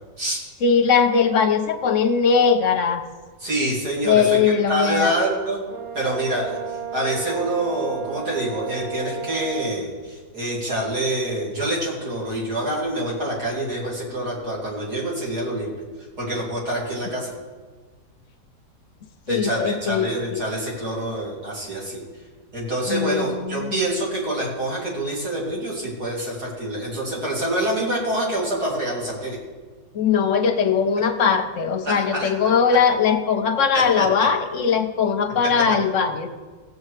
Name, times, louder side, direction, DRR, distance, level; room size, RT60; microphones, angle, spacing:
voice 1, 0.6-3.0 4.0-5.2 19.3-20.4 22.9-23.8 29.9-36.4, left 6 dB, 55° left, 7 dB, 0.9 m, -20 dB
voice 2, 3.4-5.6 5.9-6.6 6.9-15.7 16.2-17.3 19.3-22.0 22.5-29.4 31.8-32.3 33.7-34.0, right 1 dB, 60° right, -5 dB, 3.3 m, -26 dB
Brass instrument, 5.7-9.8, right 9 dB, 85° right, 1.7 m, -33 dB
17.5 x 7.7 x 3.3 m, 1.4 s
omnidirectional pair, 1.9 m